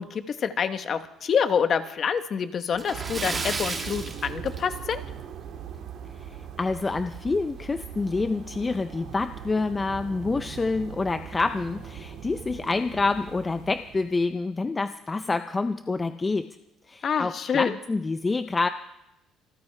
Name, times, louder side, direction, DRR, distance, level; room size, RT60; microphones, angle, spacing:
voice 1, 0.0-5.0 17.0-17.8, left 7 dB, 35° left, 10 dB, 1.0 m, -27 dB
Splash splatter, 2.7-5.1 5.4-5.6 6.0-6.1 7.6-7.7 8.0-8.1 8.7-9.0, right 3 dB, 20° right, 1.8 m, -33 dB
sound 1, 2.9-14.3, right 8 dB, 65° right, 2.0 m, -40 dB
voice 2, 6.6-16.6 16.9-18.7, left 3 dB, 15° left, 9 dB, 0.4 m, -27 dB
26.0 x 14.0 x 3.3 m, 0.86 s
cardioid pair, 150°, 0 cm